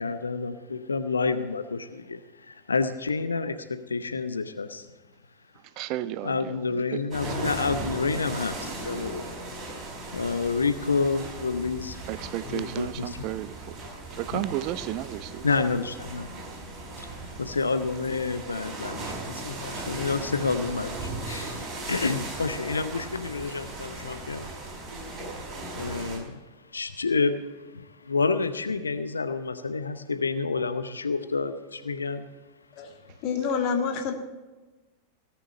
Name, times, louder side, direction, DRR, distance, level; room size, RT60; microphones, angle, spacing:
voice 1, 0.0-4.9 6.2-9.3 10.1-12.1 12.5-13.3 14.3-14.4 15.4-16.3 17.0-17.1 17.4-24.5 25.7-32.3, left 4 dB, 75° left, 10 dB, 0.7 m, -29 dB
voice 2, 5.8-6.5 12.1-13.8 14.2-15.5, right 14 dB, 40° right, 16 dB, 0.5 m, -33 dB
sound 1, 7.1-26.2, right 2 dB, 20° right, 5.0 m, -37 dB
voice 3, 33.2-34.1, left 6 dB, 40° left, 5 dB, 1.9 m, -27 dB
17.5 x 6.1 x 8.4 m, 1.2 s
figure-of-eight pair, 90°, 0 cm